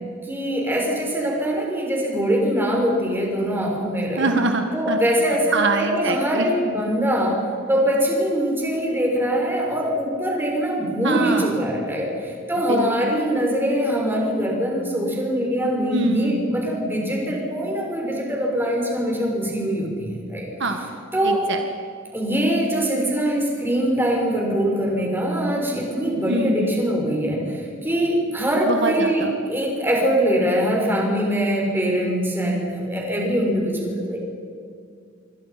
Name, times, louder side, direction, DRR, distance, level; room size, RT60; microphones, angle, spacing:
voice 1, 0.3-4.3 4.7-7.4 7.7-20.5 21.1-21.4 22.1-34.2, equal, 10° right, -1 dB, 6.3 m, -23 dB
voice 2, 4.2-5.0 5.5-6.5 11.0-11.6 12.7-13.2 15.9-16.4 20.6-20.9 21.2-21.6 26.3-26.8 28.6-29.3, right 2 dB, 60° right, 5 dB, 1.7 m, -24 dB
27.5 x 24.0 x 5.9 m, 2.3 s
head